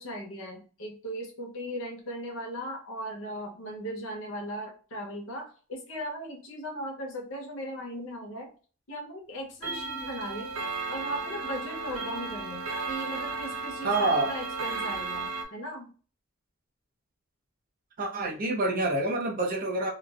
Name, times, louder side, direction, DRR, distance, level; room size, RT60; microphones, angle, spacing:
voice 1, 0.0-8.5 8.9-10.5 10.9-15.9, equal, 65° left, 0 dB, 0.8 m, -38 dB
Clock, 9.6-15.5, right 4 dB, 85° right, 0.6 m, -34 dB
voice 2, 13.8-14.3 18.0-19.9, right 2 dB, 40° right, 0 dB, 0.7 m, -27 dB
3.1 x 2.0 x 2.3 m, 0.39 s
head